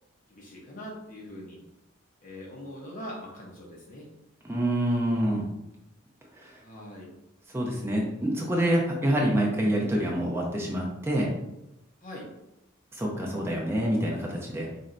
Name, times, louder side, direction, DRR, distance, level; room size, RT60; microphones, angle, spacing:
voice 1, 0.3-1.6 2.2-4.1 6.6-7.1 12.0-12.3, equal, 40° left, -3 dB, 0.8 m, -42 dB
voice 2, 4.4-5.5 6.4-6.6 7.5-11.3 12.9-14.7, right 1 dB, 10° right, -2 dB, 0.5 m, -27 dB
4.3 x 3.1 x 2.5 m, 0.88 s
head